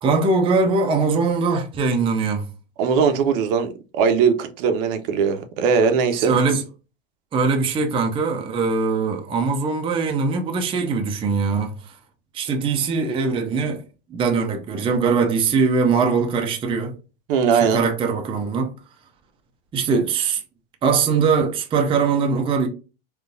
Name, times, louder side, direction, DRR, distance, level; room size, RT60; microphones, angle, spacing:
voice 1, 0.0-2.4 6.2-6.6 7.3-11.7 12.3-13.8 14.1-16.9 17.5-18.7 19.7-20.4 20.8-22.7, right 4 dB, 20° right, 0.5 m, -21 dB
voice 2, 2.8-6.4 17.3-17.8, right 6 dB, 60° right, 0.6 m, -20 dB
3.8 x 2.4 x 2.5 m
supercardioid pair, 115°, 30 cm